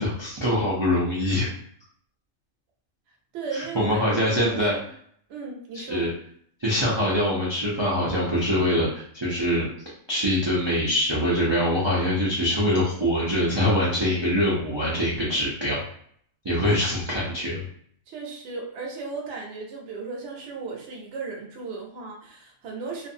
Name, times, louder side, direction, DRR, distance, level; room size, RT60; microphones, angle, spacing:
voice 1, 0.0-1.5 3.5-4.7 5.7-6.1 6.6-9.7 10.1-15.8 16.4-17.6, equal, 40° right, -8 dB, 0.4 m, -24 dB
voice 2, 3.3-4.9 5.3-6.1 18.1-23.1, right 4 dB, 60° right, -1 dB, 0.9 m, -36 dB
2.5 x 2.5 x 2.6 m, 0.63 s
omnidirectional pair, 1.4 m